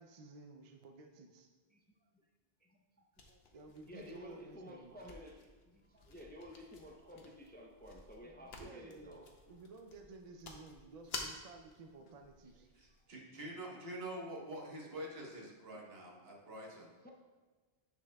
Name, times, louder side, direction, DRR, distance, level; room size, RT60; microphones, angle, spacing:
voice 1, 0.0-1.5 3.5-4.9 8.6-12.7, right 3 dB, 45° right, 4 dB, 0.5 m, -54 dB
voice 2, 2.6-3.4 3.8-9.3 12.6-12.7 13.4-13.8 15.7-15.8 17.0-17.1, equal, 10° left, 0 dB, 0.5 m, -53 dB
sound 1, 3.1-13.1, left 3 dB, 80° left, 1.1 m, -52 dB
voice 3, 12.8-16.9, right 1 dB, 75° right, -1 dB, 1.5 m, -46 dB
9.6 x 6.1 x 2.3 m, 1.4 s
omnidirectional pair, 1.0 m